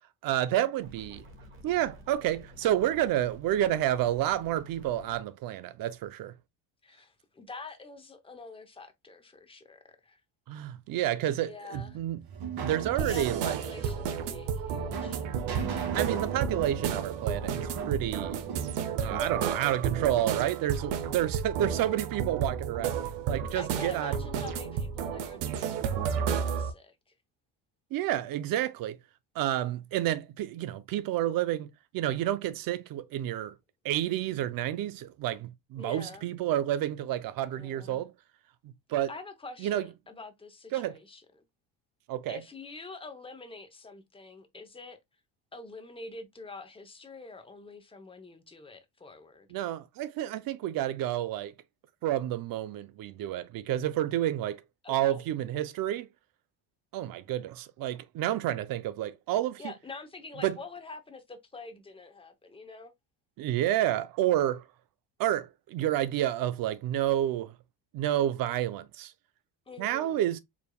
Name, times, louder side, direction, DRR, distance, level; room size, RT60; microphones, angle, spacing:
voice 1, 0.2-1.3 1.6-6.3 10.5-12.2 12.6-13.6 15.9-18.4 19.0-24.2 24.6-24.8 27.9-29.0 29.4-31.7 31.9-33.5 33.8-38.1 38.6-39.1 39.6-39.9 40.7-41.0 42.1-42.4 49.5-51.5 52.0-54.6 54.9-56.1 56.9-59.6 60.4-60.6 63.4-64.6 65.2-67.5 67.9-69.1 69.8-70.4, right 12 dB, 55° right, 0.6 m, -30 dB
sound 1, 0.8-5.2, equal, 30° right, 1.1 m, -51 dB
voice 2, 6.8-10.2 11.4-12.0 12.9-15.2 21.6-22.0 23.6-27.0 35.8-36.3 37.5-38.0 39.1-41.2 42.3-45.0 45.5-49.5 54.8-55.2 59.6-62.9 69.7-70.3, left 3 dB, 15° left, 0.8 m, -46 dB
sound 2, 11.7-19.9, right 6 dB, 70° right, 1.7 m, -38 dB
sound 3, 13.0-26.7, right 7 dB, 90° right, 0.8 m, -32 dB
4.9 x 3.5 x 2.3 m
cardioid pair, 130°, 42 cm